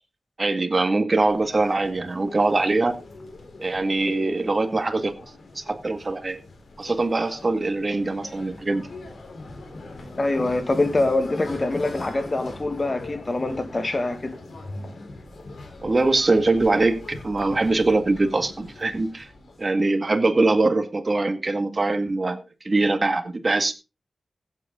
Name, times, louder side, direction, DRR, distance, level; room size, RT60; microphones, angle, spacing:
voice 1, 0.4-3.0 3.6-5.1 5.6-6.4 6.8-8.8 15.8-19.3 19.6-23.7, right 2 dB, 40° right, 2.0 m, -22 dB
sound 1, 1.2-19.7, left 2 dB, 70° left, 3.6 m, -41 dB
voice 2, 10.2-14.4, left 2 dB, 35° left, 1.9 m, -24 dB
16.0 x 8.5 x 3.8 m
wide cardioid pair, 80°, 0 cm